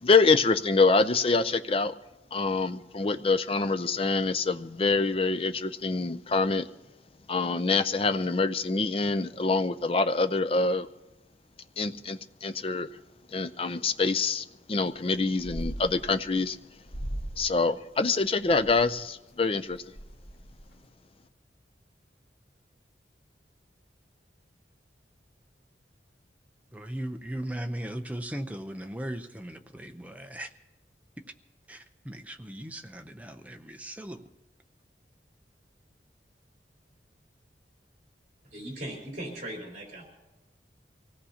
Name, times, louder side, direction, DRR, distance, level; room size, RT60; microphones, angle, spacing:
voice 1, 0.0-1.9 2.3-6.7 7.3-10.9 11.8-12.9 13.3-16.6 17.4-19.8, left 3 dB, 30° left, 0.5 m, -25 dB
sound 1, 14.9-15.1 15.4-16.5 16.9-17.5 17.9-18.9 19.4-19.5 19.7-20.8, right 1 dB, 55° left, 5.1 m, -38 dB
voice 2, 26.7-30.5 31.7-34.2, right 1 dB, 10° right, 0.7 m, -38 dB
voice 3, 38.5-40.1, right 1 dB, 45° right, 4.4 m, -38 dB
25.0 x 17.0 x 2.9 m
head